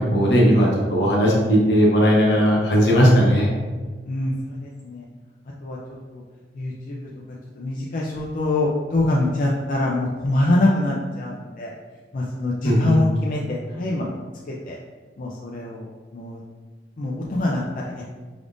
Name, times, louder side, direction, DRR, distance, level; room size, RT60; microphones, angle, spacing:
voice 1, 0.0-3.5 12.6-13.0, equal, 75° left, -3 dB, 1.0 m, -17 dB
voice 2, 4.0-5.1 5.6-5.8 6.1-6.2 6.6-7.1 7.6-11.7 12.1-14.1 14.5-14.8 15.2-15.9 16.1-16.4 17.0-18.0, left 2 dB, 50° left, -3 dB, 0.4 m, -24 dB
4.8 x 3.5 x 2.6 m, 1.4 s
head